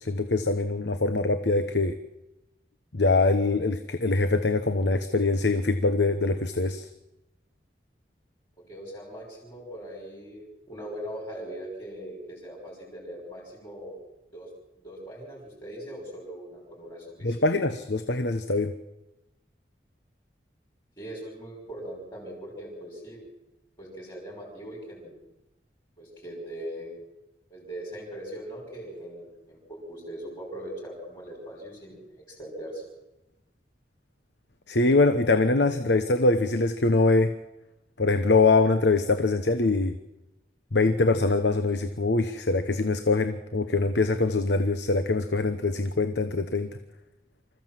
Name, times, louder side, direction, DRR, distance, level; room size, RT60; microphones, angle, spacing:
voice 1, 0.0-2.0 2.9-6.9 17.2-18.7 34.7-37.3 38.0-39.9 40.7-46.7, left 3 dB, 80° left, 9 dB, 1.1 m, -23 dB
voice 2, 8.6-14.0 14.3-14.5 14.8-17.4 21.0-23.2 23.8-25.2 26.0-26.9 27.5-32.8, right 1 dB, 25° left, -4 dB, 5.5 m, -40 dB
26.0 x 15.0 x 7.6 m, 0.96 s
head